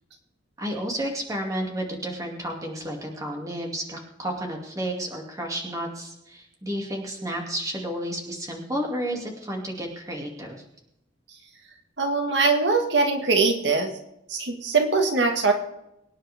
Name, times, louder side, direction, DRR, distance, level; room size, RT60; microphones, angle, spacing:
voice 1, 0.6-10.6, right 1 dB, 15° right, 1 dB, 2.6 m, -31 dB
voice 2, 12.0-13.9 14.3-15.5, right 4 dB, 65° right, 3 dB, 2.0 m, -22 dB
24.0 x 10.0 x 3.6 m, 0.83 s
head